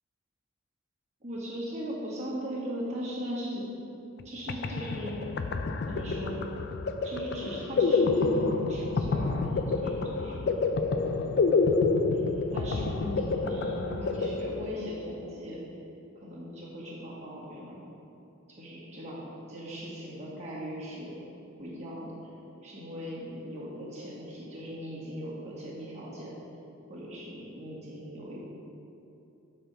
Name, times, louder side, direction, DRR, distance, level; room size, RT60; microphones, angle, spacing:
voice 1, 1.2-3.6 4.2-5.1 5.9-6.4 7.0-10.6 12.1-15.6 16.2-17.8 18.5-21.2 21.6-22.3 22.6-26.3 26.9-28.4, equal, 35° right, -7 dB, 1.8 m, -38 dB
sound 1, 4.2-4.3 4.5-15.1, left 4 dB, 55° left, 0.4 m, -28 dB
7.9 x 4.4 x 5.5 m, 2.8 s
head